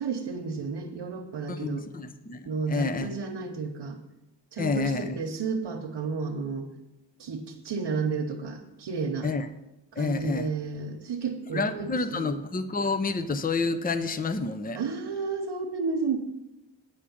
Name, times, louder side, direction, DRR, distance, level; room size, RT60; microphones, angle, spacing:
voice 1, 0.0-1.9 2.4-4.0 4.5-6.7 7.2-9.3 9.9-12.3 14.7-16.2, right 4 dB, 90° right, 1 dB, 1.0 m, -32 dB
voice 2, 1.5-3.1 4.6-5.2 9.2-9.5 10.0-10.5 11.5-14.8, left 3 dB, 20° left, 11 dB, 0.6 m, -29 dB
9.7 x 5.0 x 7.1 m, 0.96 s
cardioid pair, 55°, 42 cm